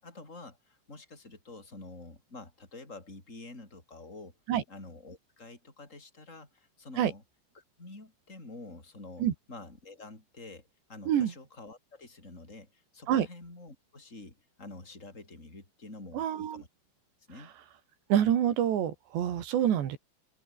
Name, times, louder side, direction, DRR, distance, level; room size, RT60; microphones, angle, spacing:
voice 1, 0.0-4.4 4.7-7.2 7.5-16.7 17.3-17.5, left 2 dB, 15° left, 6.8 m, -48 dB
voice 2, 16.1-16.6 18.1-20.0, right 10 dB, 70° right, 4.3 m, -26 dB
open air
omnidirectional pair, 5.4 m